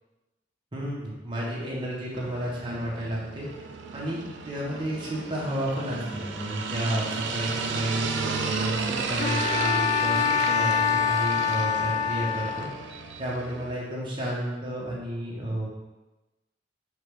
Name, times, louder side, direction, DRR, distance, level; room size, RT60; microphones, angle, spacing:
voice 1, 0.7-3.5 3.9-4.2 4.4-12.7 13.2-15.7, equal, 25° right, -5 dB, 1.0 m, -31 dB
sound 1, 2.1-13.7, right 4 dB, 75° right, 0.4 m, -33 dB
Bowed string instrument, 9.2-12.9, left 7 dB, 40° left, 0.3 m, -25 dB
4.7 x 2.3 x 3.4 m, 1.1 s
head